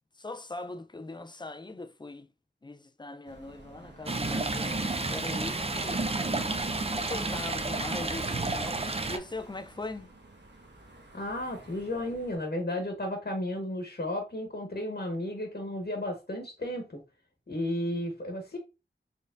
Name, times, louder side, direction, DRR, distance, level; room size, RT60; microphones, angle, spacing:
voice 1, 0.2-2.3 2.6-6.0 6.9-10.1, left 2 dB, 20° left, 0.5 m, -41 dB
sound 1, 3.2-12.4, right 2 dB, 60° right, 1.2 m, -52 dB
Stream, 4.1-9.2, right 2 dB, 30° right, 0.6 m, -31 dB
voice 2, 11.1-17.0 17.5-18.6, left 1 dB, 50° left, 1.2 m, -33 dB
4.3 x 3.7 x 2.5 m
wide cardioid pair, 55°, 20 cm